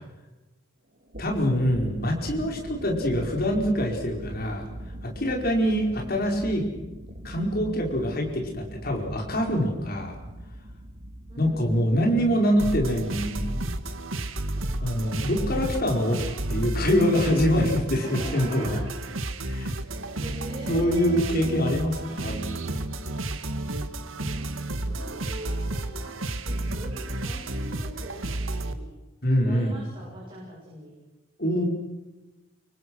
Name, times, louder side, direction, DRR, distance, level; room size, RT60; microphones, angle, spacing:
sound 1, 0.9-20.6, equal, 50° right, 3.5 m, -43 dB
voice 1, 1.2-4.7 5.0-6.6 7.2-10.1 11.4-13.6 14.8-18.7 19.5-19.7 20.7-22.8 29.2-29.7 31.4-31.6, equal, 50° left, 0 dB, 4.9 m, -25 dB
voice 2, 5.9-6.2 11.3-12.1 18.0-18.9 20.2-21.3 24.2-28.9 29.4-31.0, right 1 dB, 25° right, -4 dB, 7.7 m, -42 dB
sound 2, 12.6-28.7, right 2 dB, 90° right, 1.9 m, -31 dB
29.5 x 24.5 x 6.4 m, 1.1 s
head